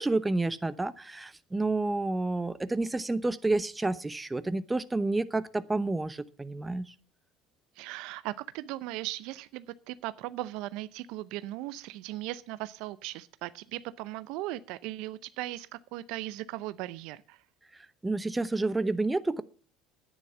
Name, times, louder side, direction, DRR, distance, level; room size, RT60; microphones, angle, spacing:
voice 1, 0.0-6.9 18.0-19.4, right 2 dB, 15° right, 15 dB, 0.9 m, -29 dB
voice 2, 7.8-17.4, right 16 dB, 70° right, 16 dB, 0.6 m, -38 dB
10.5 x 9.5 x 6.9 m, 0.41 s
hypercardioid pair, 75°, 0 cm